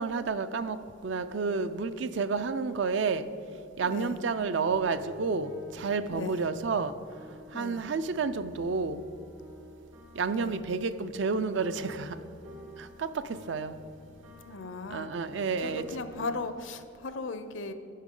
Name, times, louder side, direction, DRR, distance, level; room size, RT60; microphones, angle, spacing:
voice 1, 0.0-3.3 3.8-6.9 7.5-9.0 10.2-12.2 12.8-13.8 14.9-15.8, right 4 dB, 60° right, 12 dB, 0.4 m, -30 dB
voice 2, 3.8-4.2 6.1-6.5 7.5-7.8 10.3-10.6 14.4-17.7, left 3 dB, 65° left, 10 dB, 0.6 m, -38 dB
sound 1, 4.6-7.7 8.0-16.4, left 1 dB, 85° right, 1.8 m, -50 dB
11.0 x 10.5 x 3.8 m, 2.7 s
head